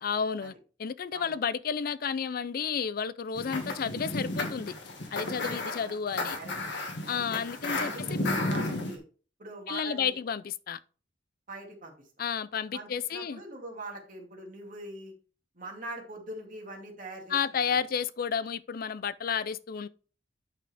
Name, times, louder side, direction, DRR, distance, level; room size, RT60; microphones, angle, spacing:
voice 1, 0.0-0.5 0.8-4.7 5.1-6.4 7.1-7.9 9.7-10.8 12.2-13.4 17.3-19.9, left 7 dB, 55° left, 0.4 m, -31 dB
sound 1, 3.3-9.0, left 2 dB, 75° left, 1.7 m, -33 dB
voice 2, 5.1-6.0 6.4-6.5 7.0-7.2 7.8-9.0 9.4-10.2 11.5-11.9 12.7-15.1 15.6-17.4 17.7-17.8, right 2 dB, 50° right, 2.2 m, -43 dB
8.3 x 6.2 x 3.4 m
head